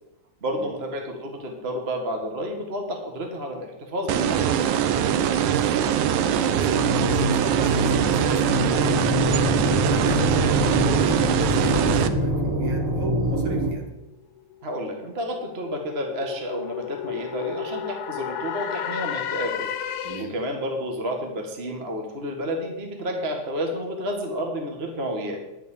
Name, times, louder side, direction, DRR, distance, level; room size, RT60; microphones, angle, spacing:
voice 1, 0.4-4.5 14.6-19.7 20.2-25.4, equal, 25° right, 2 dB, 1.4 m, -30 dB
sound 1, 4.1-12.1, right 9 dB, 85° right, 2.2 m, -22 dB
voice 2, 5.3-5.7 6.2-9.1 9.6-13.9 20.0-20.3, right 2 dB, 45° right, 1 dB, 2.4 m, -35 dB
sound 2, 6.7-13.7, left 1 dB, 60° right, 4.2 m, -25 dB
sound 3, 14.4-20.5, left 10 dB, 85° left, 2.3 m, -33 dB
10.5 x 6.8 x 8.3 m, 0.95 s
omnidirectional pair, 3.4 m